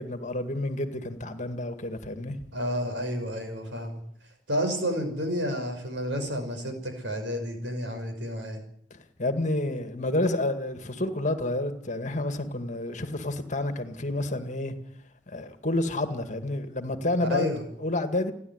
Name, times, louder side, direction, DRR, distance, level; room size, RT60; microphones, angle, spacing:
voice 1, 0.0-2.4 9.2-14.8 15.3-17.5 17.8-18.3, left 1 dB, 40° left, 2.1 m, -29 dB
voice 2, 2.5-4.0 4.5-8.6 17.2-17.6, equal, 70° right, 6.0 m, -30 dB
30.0 x 11.0 x 9.7 m
head